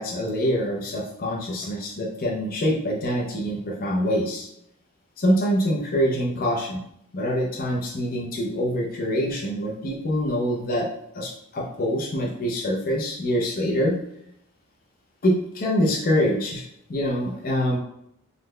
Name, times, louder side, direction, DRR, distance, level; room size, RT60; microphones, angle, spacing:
voice 1, 0.0-4.5 5.2-6.8 7.1-10.9 11.1-14.0 15.2-17.8, equal, 40° left, -1 dB, 0.5 m, -25 dB
3.8 x 2.1 x 3.2 m, 0.75 s
head